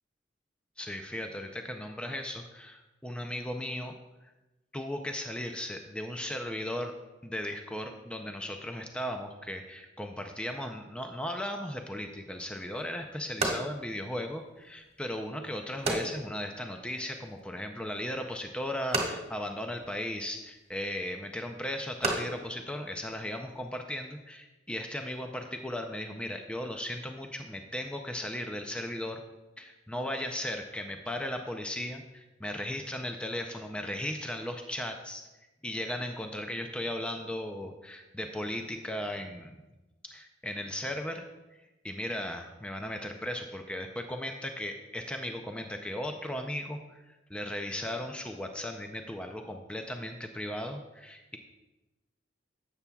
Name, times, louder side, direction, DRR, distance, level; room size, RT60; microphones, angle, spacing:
voice 1, 0.8-3.9 4.2-4.3 4.7-6.9 7.2-29.2 29.6-35.2 35.6-39.6 40.0-41.2 41.8-51.4, left 1 dB, 5° left, 4 dB, 0.4 m, -36 dB
sound 1, 12.3-23.7, right 2 dB, 35° right, 1.6 m, -38 dB
12.5 x 8.3 x 2.3 m, 1.1 s
head